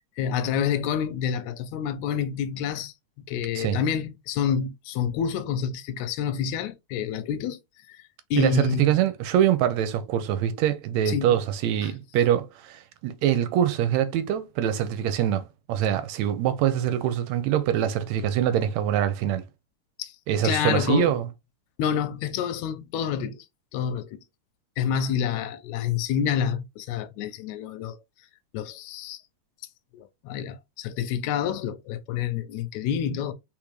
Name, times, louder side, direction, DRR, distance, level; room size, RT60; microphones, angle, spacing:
voice 1, 0.2-2.9 3.3-7.6 7.9-8.0 8.3-8.9 11.1-11.4 11.8-11.9 20.0-20.1 20.4-21.2 21.8-23.5 23.7-24.2 24.8-28.0 28.5-29.2 29.9-33.3, left 8 dB, 80° left, 1.9 m, -28 dB
voice 2, 8.4-19.4 20.3-21.3, right 10 dB, 80° right, 1.8 m, -24 dB
4.3 x 3.6 x 3.1 m
omnidirectional pair, 3.3 m